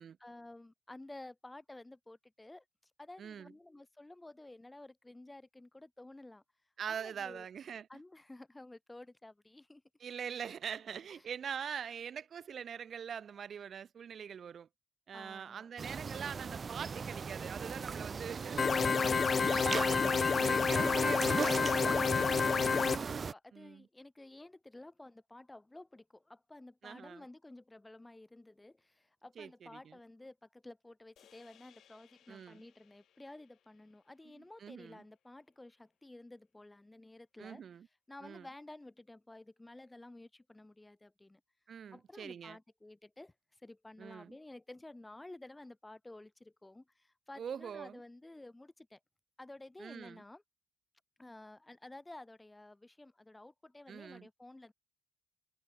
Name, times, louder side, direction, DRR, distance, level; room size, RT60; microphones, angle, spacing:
voice 1, 0.2-2.6 3.0-6.4 6.9-7.5 7.9-9.8 11.1-11.2 15.1-15.7 22.6-37.6 38.1-41.4 41.9-49.0 49.4-50.4 51.2-54.7, left 2 dB, 15° left, 5.4 m, -53 dB
voice 2, 3.2-3.5 6.8-7.9 10.0-14.7 15.1-22.4 23.5-23.9 26.8-27.2 29.4-30.0 32.3-32.6 34.4-35.0 37.4-37.9 38.2-38.5 41.7-42.6 44.0-44.4 47.4-48.0 49.8-50.2 53.9-54.3, right 7 dB, 55° right, 1.1 m, -44 dB
sound 1, 15.8-23.3, right 5 dB, 40° right, 0.8 m, -38 dB
sound 2, 18.6-23.0, left 5 dB, 40° left, 0.3 m, -29 dB
sound 3, 31.2-35.6, left 10 dB, 70° left, 7.6 m, -68 dB
cardioid pair, 90°, 0 cm